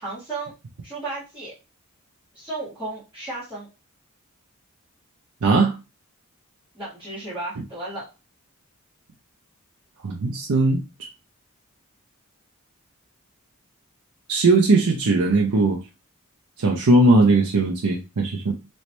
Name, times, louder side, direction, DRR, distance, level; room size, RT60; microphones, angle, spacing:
voice 1, 0.0-0.5 0.8-1.5 2.3-3.7 6.7-8.1, right 2 dB, 5° right, -13 dB, 1.8 m, -34 dB
voice 2, 5.4-5.7 10.0-10.8 14.3-15.8 16.6-18.5, right 2 dB, 85° right, 1 dB, 0.6 m, -19 dB
3.1 x 3.1 x 3.0 m, 0.27 s
head